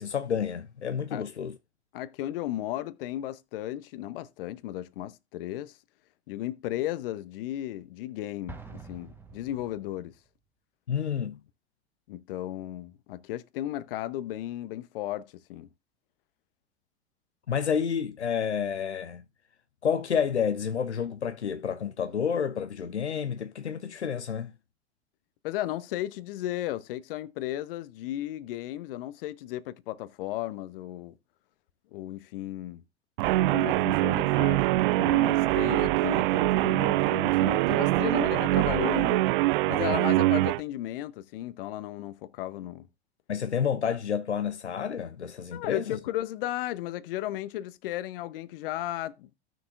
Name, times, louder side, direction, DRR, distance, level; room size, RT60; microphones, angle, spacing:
voice 1, 0.0-1.5 10.9-11.4 17.5-19.2 19.8-24.5 43.3-46.0, left 7 dB, 90° left, 0.6 m, -29 dB
voice 2, 1.9-5.8 6.3-10.1 12.1-15.7 25.4-31.2 31.9-32.8 33.5-34.6 35.0-39.3 39.7-42.9 45.5-49.3, left 14 dB, 55° left, 0.8 m, -35 dB
Explosion, 8.5-10.3, right 3 dB, 5° right, 1.2 m, -46 dB
Guitar, 33.2-40.6, right 18 dB, 50° right, 0.4 m, -24 dB
15.5 x 6.1 x 2.5 m
figure-of-eight pair, 85°, 33 cm